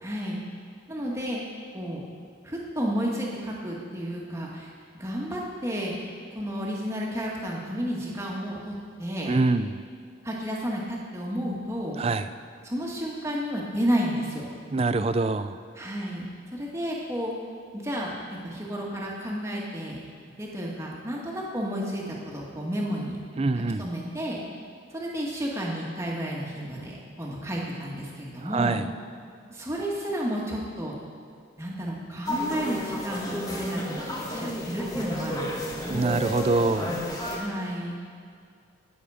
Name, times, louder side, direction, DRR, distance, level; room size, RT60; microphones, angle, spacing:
voice 1, 0.0-0.4 0.9-1.4 1.7-2.0 2.4-6.1 6.3-8.7 9.0-9.4 10.2-12.0 12.6-14.5 15.8-16.2 16.5-17.3 17.7-20.0 20.4-23.2 23.8-24.4 24.9-28.8 29.5-31.0 31.6-36.2 37.3-37.9, equal, 15° right, -3 dB, 1.8 m, -31 dB
voice 2, 9.3-9.8 12.0-12.3 14.7-15.6 23.4-23.9 28.4-28.9 35.9-36.9, right 3 dB, 30° right, 11 dB, 0.4 m, -25 dB
sound 1, 32.3-37.4, left 1 dB, 20° left, 1.4 m, -32 dB
19.0 x 7.2 x 5.0 m, 2.2 s
head